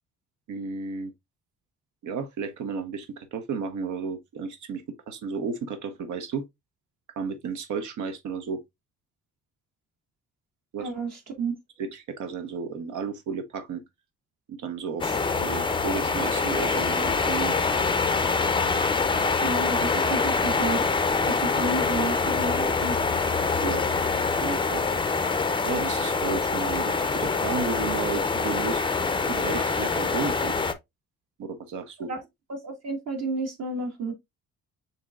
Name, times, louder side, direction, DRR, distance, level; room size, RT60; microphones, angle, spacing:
voice 1, 0.5-1.1 2.0-6.4 7.2-8.6 10.7-10.9 11.8-13.8 14.5-17.6 23.6-23.8 24.1-24.8 25.6-28.8 29.3-30.6 31.4-32.1, right 5 dB, 75° right, 0.8 m, -33 dB
voice 2, 10.8-11.5 19.4-20.8 21.3-23.0 32.1-32.2 32.5-34.1, right 3 dB, 55° right, 1.6 m, -31 dB
sound 1, 15.0-30.7, left 4 dB, 15° left, 0.4 m, -25 dB
6.9 x 2.7 x 2.3 m
cardioid pair, 90°, 30 cm